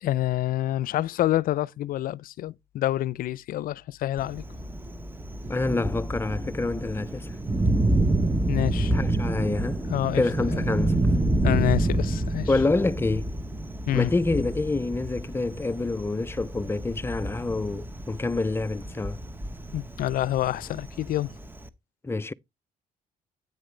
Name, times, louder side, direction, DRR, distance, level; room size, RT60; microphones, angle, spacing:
voice 1, 0.0-4.4 8.5-8.9 9.9-10.2 10.5-10.7 11.4-12.5 13.9-14.1 19.7-21.3, left 14 dB, 65° left, 0.5 m, -27 dB
Thunder, 4.2-21.7, right 2 dB, 15° right, 1.1 m, -28 dB
voice 2, 5.5-7.3 8.9-9.8 10.1-11.0 12.5-13.3 13.9-19.2 22.0-22.3, left 3 dB, 15° left, 0.5 m, -27 dB
9.9 x 8.7 x 3.2 m
cardioid pair, 95°, 16 cm